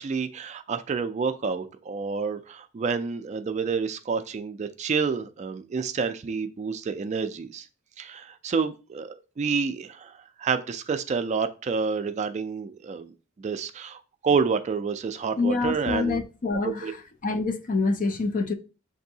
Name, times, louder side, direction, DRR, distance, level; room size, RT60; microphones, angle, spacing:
voice 1, 0.0-7.6 8.0-10.1 10.4-13.1 13.4-16.2 16.6-16.9, right 5 dB, 35° right, 0.3 m, -29 dB
voice 2, 15.4-16.9 17.2-18.5, left 3 dB, 40° left, 0.4 m, -26 dB
6.7 x 2.6 x 2.7 m
head